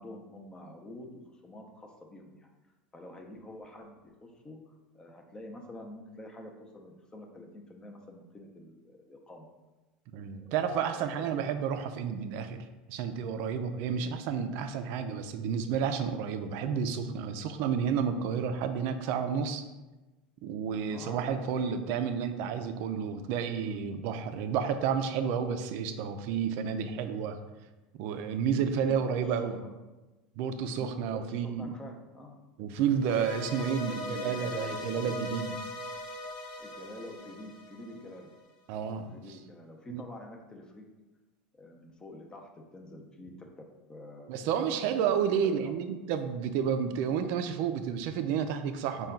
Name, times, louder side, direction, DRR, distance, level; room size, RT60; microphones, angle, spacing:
voice 1, 0.0-2.5 2.9-9.5 10.4-11.5 14.0-14.2 20.9-21.6 28.5-29.1 29.6-29.7 30.8-32.4 33.4-33.5 33.9-35.1 36.6-38.3 39.0-40.9 41.5-43.6 43.9-45.7, left 1 dB, 20° left, 2 dB, 0.6 m, -47 dB
voice 2, 10.1-19.6 20.4-27.4 27.9-29.6 30.4-31.7 32.6-35.6 38.7-39.2 39.9-40.0 44.3-49.1, right 7 dB, 60° right, 8 dB, 0.4 m, -31 dB
sound 1, 33.0-38.3, left 1 dB, 70° left, 0.7 m, -40 dB
4.3 x 2.3 x 3.6 m, 1.1 s
supercardioid pair, 115°, 4 cm